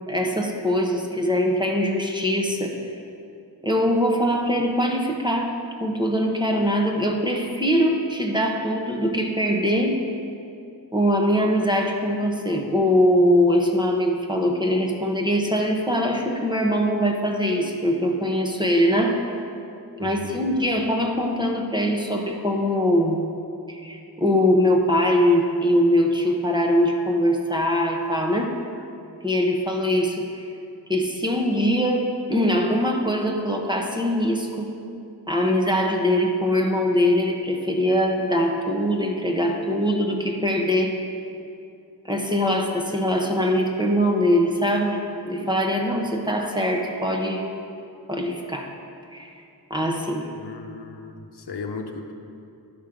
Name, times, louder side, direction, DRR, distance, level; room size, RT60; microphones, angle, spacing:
voice 1, 0.1-2.8 3.6-5.6 5.8-10.0 10.9-19.2 20.0-23.3 23.7-28.5 29.2-30.4 30.9-34.7 35.3-41.0 42.0-47.4 48.1-48.7 49.1-49.3 49.7-50.3, equal, 10° right, 0 dB, 1.0 m, -22 dB
voice 2, 20.0-20.4 50.4-52.1, left 4 dB, 75° left, 4 dB, 0.8 m, -36 dB
11.0 x 6.0 x 5.0 m, 2.6 s
wide cardioid pair, 70°, 40 cm